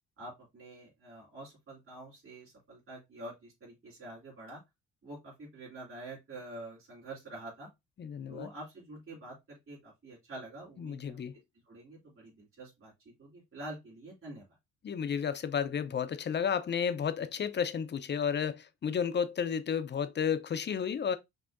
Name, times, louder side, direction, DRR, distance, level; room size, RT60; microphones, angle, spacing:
voice 1, 0.2-4.6 5.0-7.7 8.3-11.2 11.6-14.4, right 1 dB, 45° right, 3.0 m, -47 dB
voice 2, 8.0-8.5 10.8-11.3 14.8-21.2, left 7 dB, 35° left, 0.5 m, -32 dB
5.8 x 2.7 x 2.5 m
cardioid pair, 90°, 30 cm